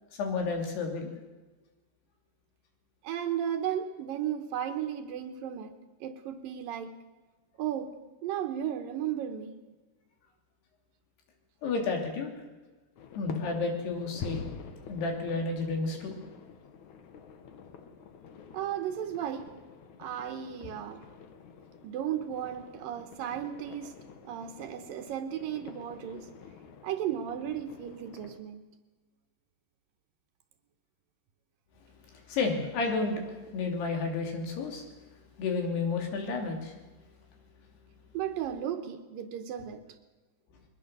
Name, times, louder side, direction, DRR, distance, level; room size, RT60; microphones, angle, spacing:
voice 1, 0.2-1.1 11.6-12.3 13.1-14.4 14.9-16.1 32.1-33.2 33.5-34.8 35.4-36.8, left 4 dB, 80° left, 2 dB, 5.0 m, -31 dB
voice 2, 3.0-5.8 6.0-7.0 7.6-7.9 8.2-9.5 18.5-19.5 20.0-21.1 21.8-23.9 24.2-26.3 26.8-28.6 38.1-40.0, right 10 dB, 70° right, 7 dB, 2.5 m, -35 dB
sound 1, 13.0-28.4, left 5 dB, 60° left, 2.3 m, -47 dB
22.0 x 20.0 x 6.7 m, 1.2 s
omnidirectional pair, 4.6 m